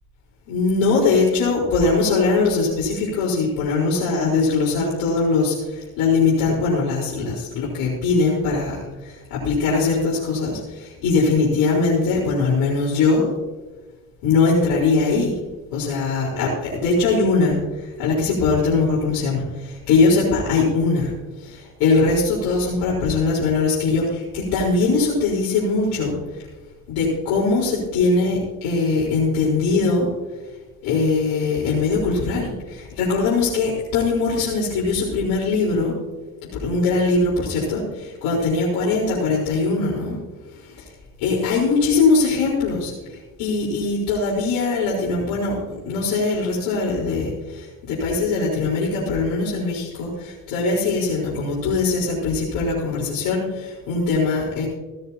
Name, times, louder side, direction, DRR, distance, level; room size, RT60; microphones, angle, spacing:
voice 1, 0.5-13.3 14.2-15.3 15.7-17.6 18.0-21.1 21.4-26.1 26.9-30.1 30.8-35.9 36.6-40.2 41.2-42.9 43.4-54.7, left 3 dB, 70° left, -8 dB, 4.5 m, -21 dB
17.5 x 13.5 x 2.9 m, 1.2 s
hypercardioid pair, 65°, 42 cm